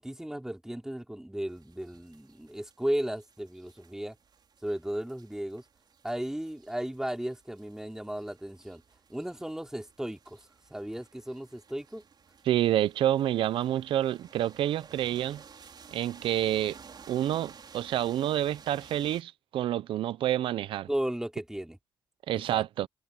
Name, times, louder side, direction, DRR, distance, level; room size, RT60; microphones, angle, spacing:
voice 1, 0.0-4.1 4.6-5.6 6.0-8.8 9.1-10.4 10.7-12.0 20.9-21.8 22.3-22.6, right 1 dB, 5° right, 3.0 m, -35 dB
sound 1, 1.5-19.2, right 6 dB, 55° right, 5.2 m, -55 dB
voice 2, 12.4-15.4 15.9-16.8 17.1-20.9 22.3-22.9, right 12 dB, 90° right, 0.5 m, -28 dB
cardioid pair, 75°, 9 cm